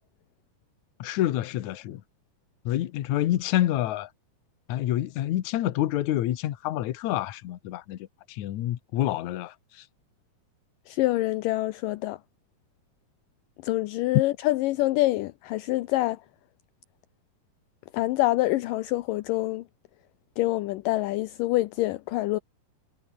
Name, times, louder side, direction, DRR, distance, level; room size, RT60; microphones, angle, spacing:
voice 1, 1.0-2.0 2.7-4.1 4.7-8.0 8.3-9.5, left 13 dB, 65° left, 2.2 m, -27 dB
voice 2, 10.9-12.2 13.6-16.2 17.9-19.6 20.4-22.4, left 18 dB, 80° left, 2.1 m, -26 dB
omnidirectional pair, 4.3 m